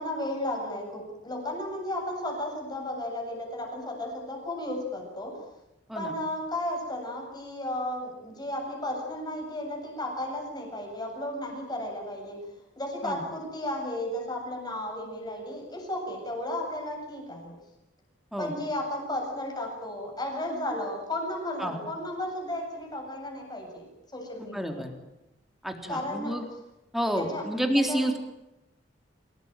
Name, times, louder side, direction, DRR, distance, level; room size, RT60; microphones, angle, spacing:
voice 1, 0.0-5.4 5.9-12.5 12.8-17.6 18.4-24.9 25.9-26.5 27.1-27.5 27.7-28.1, left 1 dB, 20° left, 0 dB, 8.0 m, -34 dB
voice 2, 24.4-24.9 25.6-26.5 26.9-28.2, equal, ahead, 4 dB, 3.7 m, -29 dB
28.0 x 18.5 x 9.2 m, 0.93 s
head